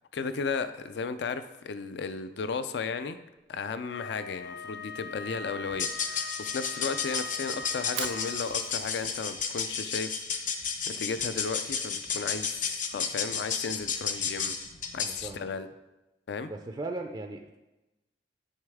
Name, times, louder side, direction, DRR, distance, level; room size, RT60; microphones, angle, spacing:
voice 1, 0.1-3.2 3.5-10.2 10.9-14.5 14.9-15.7 16.3-16.5, left 5 dB, 70° left, 12 dB, 0.4 m, -34 dB
Wind instrument woodwind instrument, 3.9-8.8, left 4 dB, 85° left, 0.9 m, -41 dB
sound 1, 5.7-15.2, left 6 dB, 50° left, 0.8 m, -33 dB
Fire, 7.7-13.9, right 9 dB, 80° right, 0.5 m, -46 dB
voice 2, 15.0-15.5 16.5-17.6, right 2 dB, 25° right, 4 dB, 0.4 m, -38 dB
8.9 x 6.4 x 3.5 m, 1.0 s
head